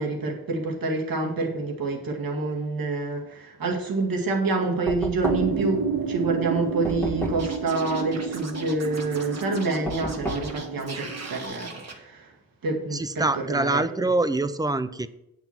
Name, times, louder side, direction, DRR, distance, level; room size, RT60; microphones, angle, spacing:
voice 1, 0.0-12.3 12.6-14.1, right 3 dB, 70° right, 1 dB, 2.0 m, -27 dB
Knock, 4.9-5.7 6.9-7.6 9.9-10.6, right 1 dB, 5° left, 1.4 m, -31 dB
sound 1, 5.2-11.4, right 5 dB, 90° right, 1.6 m, -31 dB
Scratching (performance technique), 7.4-11.9, right 3 dB, 45° right, 1.4 m, -39 dB
voice 2, 12.9-15.1, right 2 dB, 10° right, 12 dB, 0.5 m, -25 dB
9.0 x 6.0 x 5.7 m, 0.82 s
wide cardioid pair, 120°, 36 cm